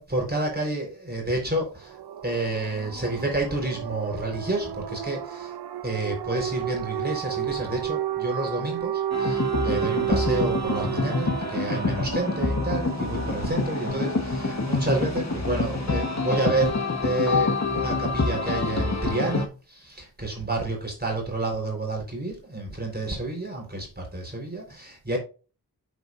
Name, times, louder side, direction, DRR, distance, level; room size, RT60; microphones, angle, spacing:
voice 1, 0.0-2.0 2.2-5.6 5.8-25.2, right 2 dB, 25° right, 4.1 m, -29 dB
sound 1, 1.7-16.5, right 11 dB, 65° right, 0.5 m, -33 dB
sound 2, 9.1-19.5, left 3 dB, 40° left, 1.3 m, -27 dB
7.8 x 7.5 x 2.6 m
wide cardioid pair, 80°, 41 cm